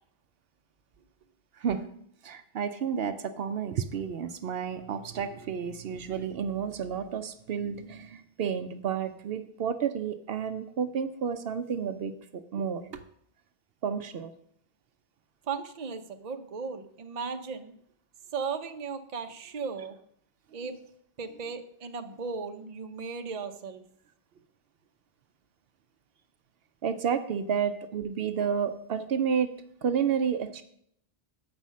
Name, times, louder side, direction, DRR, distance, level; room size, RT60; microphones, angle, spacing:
voice 1, 2.2-13.0 13.8-14.3 26.8-29.5 29.8-30.6, right 7 dB, 75° right, 9 dB, 0.8 m, -31 dB
voice 2, 15.5-17.7 18.3-20.0 20.5-20.7 21.2-23.8, right 5 dB, 45° right, 7 dB, 0.7 m, -36 dB
7.8 x 5.6 x 6.2 m, 0.70 s
omnidirectional pair, 1.0 m